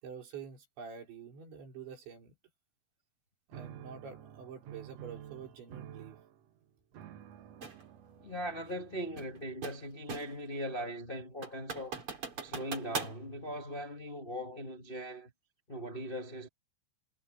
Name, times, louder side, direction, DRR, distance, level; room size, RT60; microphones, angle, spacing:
voice 1, 0.0-2.4 3.5-6.2, right 6 dB, 90° right, 7.6 m, -47 dB
sound 1, 3.5-10.0, right 10 dB, 70° right, 1.6 m, -51 dB
sound 2, 7.6-7.8 9.2-10.5 10.9-11.0 11.4-13.2, right 5 dB, 30° right, 4.1 m, -40 dB
voice 2, 8.2-12.0 12.4-15.3 15.7-16.5, equal, 80° left, 0.5 m, -40 dB
omnidirectional pair, 5.1 m